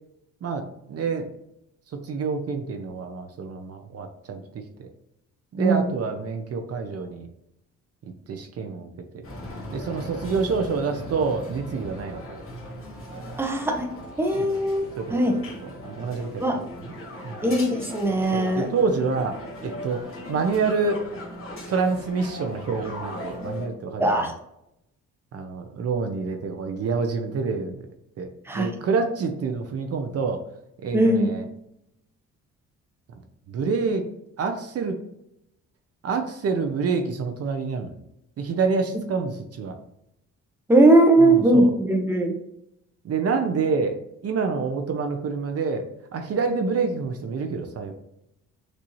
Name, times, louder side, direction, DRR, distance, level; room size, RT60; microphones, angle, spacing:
voice 1, 0.4-1.3 1.9-4.9 5.5-7.3 8.3-8.9 9.1-9.2 9.7-12.4 14.4-14.6 15.0-15.2 15.6-16.9 17.2-17.4 18.3-19.4 19.6-21.0 21.7-24.3 25.3-27.8 28.2-28.3 28.5-30.4 30.8-31.5 33.5-34.1 34.4-35.0 36.0-38.0 38.4-39.8 41.2-41.7 43.0-44.0 44.2-45.9 46.1-47.9, right 4 dB, 55° right, 5 dB, 0.7 m, -27 dB
voice 2, 5.6-5.9 13.4-13.9 14.2-14.9 15.1-15.4 16.4-16.6 17.4-18.7 24.0-24.3 28.5-28.7 30.9-31.3 40.7-42.3, right 1 dB, 10° right, 3 dB, 0.8 m, -19 dB
sound 1, 9.2-23.7, left 1 dB, 45° left, 1.7 m, -38 dB
6.1 x 2.7 x 3.0 m, 0.81 s
cardioid pair, 90°, 30 cm